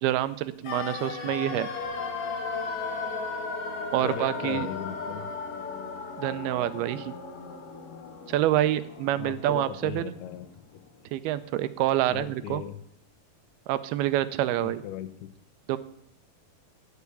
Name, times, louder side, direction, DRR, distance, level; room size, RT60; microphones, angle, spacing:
voice 1, 0.0-1.7 3.9-4.7 6.2-7.2 8.3-10.1 11.1-12.6 13.7-14.8 15.7-15.8, right 13 dB, 85° right, 14 dB, 2.6 m, -27 dB
sound 1, 0.6-10.6 10.8-10.9, left 4 dB, 50° left, 2.0 m, -36 dB
sound 2, 1.8-8.4, left 3 dB, 25° left, 2.6 m, -54 dB
voice 2, 4.0-5.3 9.2-10.5 12.1-12.8 14.6-15.3, left 12 dB, 90° left, 8 dB, 2.8 m, -38 dB
14.5 x 7.1 x 8.3 m, 0.70 s
omnidirectional pair, 4.5 m